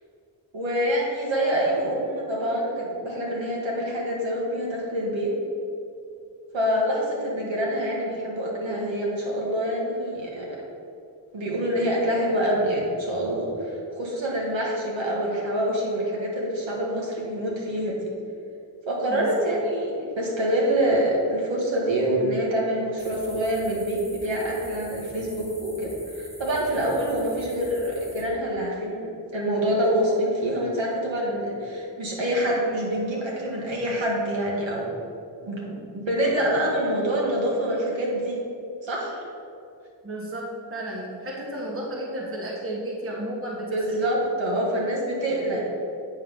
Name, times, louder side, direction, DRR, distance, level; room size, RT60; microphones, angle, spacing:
voice 1, 0.5-5.3 6.5-10.4 11.3-18.0 18.9-34.9 35.4-38.4 38.8-39.2 43.7-45.7, equal, 80° right, -4 dB, 2.1 m, -26 dB
sound 1, 23.0-28.2, equal, 5° right, 1.1 m, -44 dB
voice 2, 40.0-44.0, right 1 dB, 30° right, -2 dB, 1.2 m, -33 dB
8.6 x 3.8 x 6.8 m, 2.5 s
wide cardioid pair, 155°, 45 cm